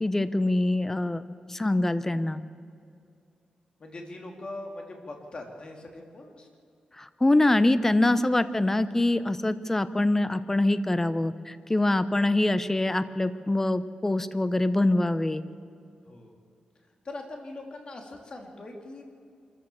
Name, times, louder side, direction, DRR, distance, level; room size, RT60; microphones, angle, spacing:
voice 1, 0.0-1.2 1.5-2.4 7.0-15.4, left 2 dB, 15° left, 13 dB, 0.8 m, -24 dB
voice 2, 3.8-6.5 11.1-11.2 16.1-16.3 17.0-19.0, left 2 dB, 45° left, 2 dB, 3.1 m, -41 dB
25.0 x 14.5 x 7.1 m, 2.4 s
wide cardioid pair, 110°, 2 cm